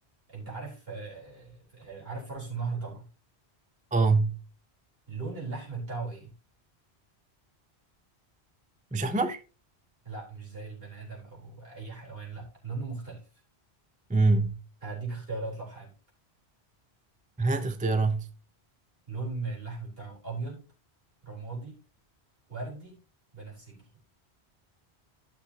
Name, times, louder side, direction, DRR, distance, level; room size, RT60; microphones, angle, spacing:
voice 1, 0.3-3.1 5.1-6.4 10.0-13.3 14.8-15.9 19.1-20.6 21.2-21.8 22.5-23.0 23.3-23.9, right 3 dB, 60° right, 4.4 m, -38 dB
voice 2, 3.9-4.4 8.9-9.4 14.1-14.6 17.4-18.3, right 3 dB, 10° right, 0.5 m, -24 dB
13.5 x 6.1 x 2.8 m
omnidirectional pair, 1.1 m